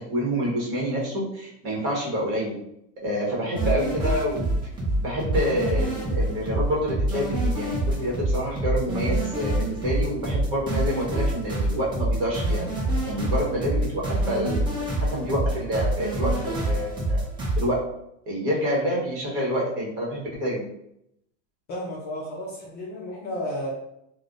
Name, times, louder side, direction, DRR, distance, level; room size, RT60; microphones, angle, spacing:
voice 1, 0.1-2.6 3.0-4.5 5.0-12.6 13.0-14.8 15.1-17.2 17.5-17.7 18.3-20.7, equal, 35° right, -4 dB, 1.0 m, -27 dB
sound 1, 3.6-17.7, right 1 dB, 15° right, 0.6 m, -26 dB
voice 2, 21.7-23.7, equal, 30° left, -4 dB, 0.5 m, -32 dB
3.2 x 2.1 x 2.5 m, 0.78 s
supercardioid pair, 155°, 35 cm